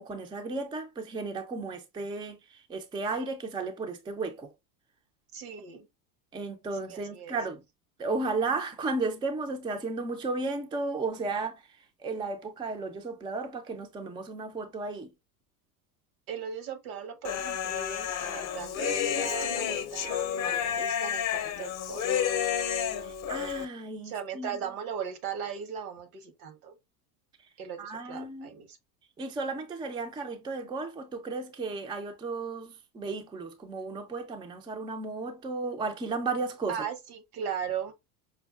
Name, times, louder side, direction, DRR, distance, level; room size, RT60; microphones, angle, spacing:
voice 1, 0.0-2.4 2.7-4.5 6.3-7.6 8.0-11.6 12.0-15.1 23.0-24.6 27.8-28.5 29.2-36.8, right 3 dB, 10° right, 0.4 m, -34 dB
voice 2, 5.3-5.9 6.9-7.4 16.3-22.2 24.0-26.7 27.6-28.8 36.7-37.9, right 7 dB, 75° right, 1.1 m, -38 dB
Human voice, 17.2-23.7, left 9 dB, 40° left, 0.7 m, -30 dB
5.4 x 2.2 x 2.3 m
hypercardioid pair, 100°, 45 cm